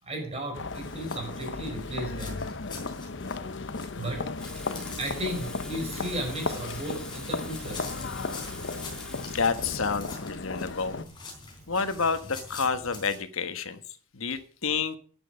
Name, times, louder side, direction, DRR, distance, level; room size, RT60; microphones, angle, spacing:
voice 1, 0.0-2.5 4.0-4.3 5.0-7.9, right 1 dB, 30° right, 5.4 m, -35 dB
sound 1, 0.5-11.0, left 3 dB, 55° left, 0.8 m, -35 dB
sound 2, 0.7-13.2, left 4 dB, 20° left, 3.9 m, -46 dB
Water tap faucet / Sink (filling or washing), 4.4-12.0, left 1 dB, 5° left, 1.6 m, -45 dB
voice 2, 9.2-11.0 11.7-13.8 14.1-15.0, left 5 dB, 75° left, 1.3 m, -29 dB
12.0 x 9.2 x 5.1 m
head